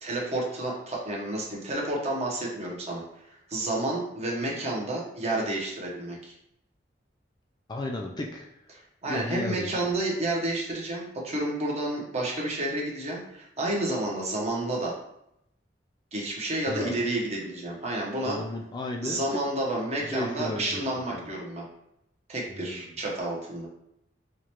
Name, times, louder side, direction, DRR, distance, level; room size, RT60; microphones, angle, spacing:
voice 1, 0.0-3.0 3.5-6.3 9.0-14.9 16.1-18.4 19.0-21.6 22.3-23.7, right 1 dB, 35° right, -3 dB, 0.9 m, -30 dB
voice 2, 7.7-8.5 9.1-9.9 16.7-17.0 18.3-19.4 20.1-20.8 21.1-21.3 22.5-22.9, left 2 dB, 25° left, 1 dB, 0.3 m, -34 dB
4.7 x 2.2 x 2.9 m, 0.78 s
head